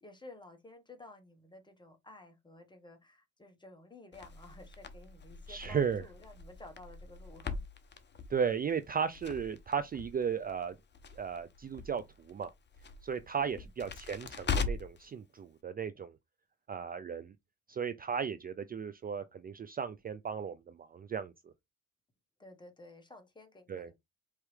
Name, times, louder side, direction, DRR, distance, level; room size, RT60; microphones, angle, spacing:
voice 1, 0.0-7.6 13.3-13.7 22.4-23.9, left 2 dB, 15° left, 1.2 m, -53 dB
Crackle, 4.1-15.0, left 4 dB, 35° left, 0.8 m, -41 dB
voice 2, 5.5-6.0 8.3-10.7 11.2-12.5 13.0-16.1 16.7-17.3 17.7-21.3 23.7-23.9, right 7 dB, 30° right, 0.4 m, -35 dB
4.6 x 3.0 x 3.2 m
cardioid pair, 90°, 30 cm